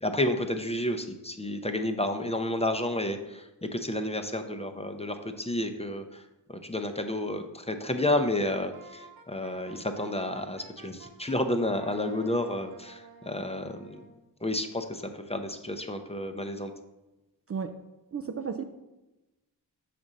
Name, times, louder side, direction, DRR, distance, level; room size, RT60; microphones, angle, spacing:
voice 1, 0.0-6.2 6.5-14.0 14.4-16.7, left 1 dB, 15° left, 6 dB, 0.6 m, -31 dB
Wind instrument woodwind instrument, 8.7-11.4 11.8-14.2, right 4 dB, 55° right, 1.2 m, -51 dB
voice 2, 18.1-18.6, right 6 dB, 35° right, 7 dB, 0.4 m, -33 dB
6.0 x 5.1 x 4.0 m, 1.0 s
cardioid pair, 50°, 43 cm